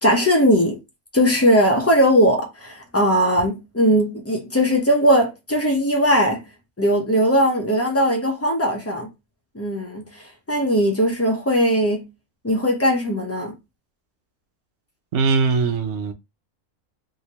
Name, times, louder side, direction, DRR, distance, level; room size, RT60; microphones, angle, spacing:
voice 1, 0.0-0.8 1.1-6.5 6.8-9.1 9.5-12.1 12.4-13.5, equal, 15° left, 0.6 m, -19 dB
voice 2, 15.1-16.1, right 4 dB, 65° right, 0.9 m, -20 dB
3.3 x 2.8 x 2.8 m
omnidirectional pair, 1.4 m